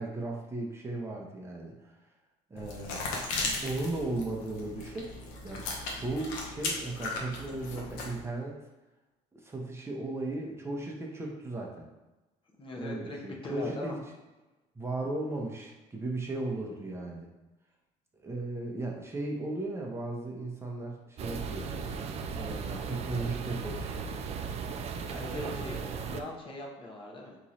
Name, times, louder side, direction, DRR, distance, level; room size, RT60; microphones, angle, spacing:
voice 1, 0.0-2.0 2.5-3.0 3.4-5.1 5.4-5.6 5.9-8.6 9.3-11.9 12.8-14.0 14.8-17.3 18.2-21.7 22.3-24.0, right 2 dB, 20° right, -1 dB, 0.8 m, -36 dB
sound 1, 2.6-8.2, left 3 dB, 85° left, 0.9 m, -37 dB
voice 2, 12.6-13.2 13.4-13.9 25.1-27.4, left 2 dB, 35° left, -1 dB, 1.0 m, -40 dB
sound 2, 21.2-26.2, right 5 dB, 45° right, 0.4 m, -36 dB
3.6 x 3.0 x 4.2 m, 1.1 s
cardioid pair, 100°, 15 cm